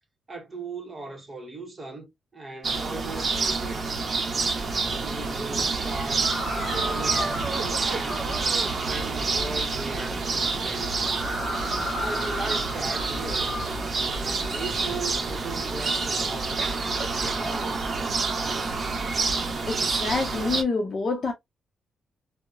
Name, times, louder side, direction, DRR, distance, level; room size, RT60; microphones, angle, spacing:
voice 1, 0.3-4.1 5.0-8.3 8.8-11.2 12.0-13.5 14.1-16.7 17.0-17.9, right 2 dB, 25° right, 0.9 m, -38 dB
sound 1, 2.6-20.6, right 4 dB, 45° right, 0.6 m, -28 dB
Wind, 4.6-9.3, right 5 dB, 85° right, 0.5 m, -41 dB
sound 2, 6.2-8.7 11.0-13.9, equal, 20° left, 1.5 m, -33 dB
voice 2, 19.7-21.3, left 3 dB, 45° left, 0.6 m, -27 dB
2.8 x 2.0 x 2.4 m
cardioid pair, 115°, 0 cm